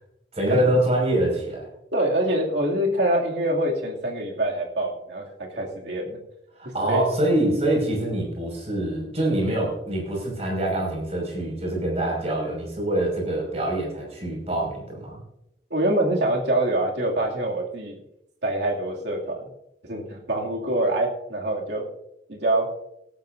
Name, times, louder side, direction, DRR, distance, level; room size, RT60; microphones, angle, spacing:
voice 1, 0.3-1.7 6.6-15.2, right 1 dB, 35° right, -1 dB, 5.5 m, -25 dB
voice 2, 1.9-6.2 6.9-7.1 15.7-18.0 18.4-19.5 19.8-21.9 22.3-22.7, right 1 dB, 80° right, -1 dB, 2.5 m, -25 dB
18.5 x 13.0 x 2.6 m, 0.82 s
head